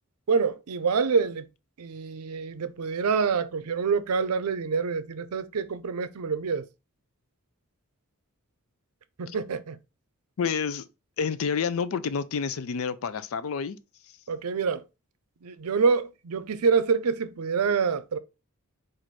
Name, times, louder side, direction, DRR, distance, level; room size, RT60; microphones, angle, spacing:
voice 1, 0.3-1.5 1.8-6.7 9.2-9.8 14.3-14.8 15.4-18.2, right 5 dB, 80° right, 0.5 m, -26 dB
voice 2, 10.4-10.9 11.2-13.8, left 6 dB, 65° left, 0.4 m, -29 dB
4.6 x 2.6 x 4.1 m
head